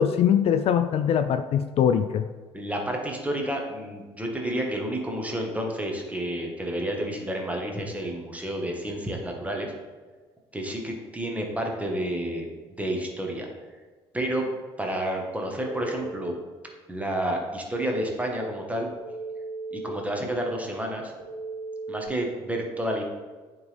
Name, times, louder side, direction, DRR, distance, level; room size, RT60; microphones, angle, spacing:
voice 1, 0.0-2.2, left 8 dB, 55° left, 9 dB, 0.4 m, -22 dB
voice 2, 2.5-9.7 10.5-12.5 12.8-13.5 14.1-14.4 14.8-16.4 16.9-18.9 19.7-21.1 21.9-23.0, right 1 dB, 10° right, 1 dB, 1.5 m, -30 dB
Telephone, 15.5-16.0 19.0-20.0 21.2-22.1, right 3 dB, 55° right, 1.5 m, -36 dB
9.4 x 3.7 x 3.4 m, 1.4 s
hypercardioid pair, 65°, 12 cm